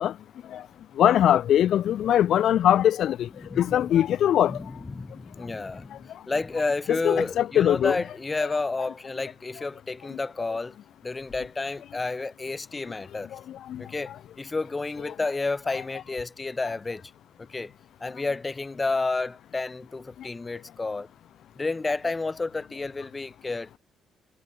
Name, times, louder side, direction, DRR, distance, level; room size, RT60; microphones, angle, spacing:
voice 1, 1.0-3.3 3.6-4.6 6.9-8.0 8.4-8.5, left 11 dB, 70° left, 0.5 m, -21 dB
voice 2, 3.4-4.0 4.5-10.8 11.0-13.3 13.8-17.0 17.5-17.7 18.0-21.1 21.6-23.8, left 3 dB, 25° left, 5.0 m, -31 dB
cardioid pair, 90°, 0 cm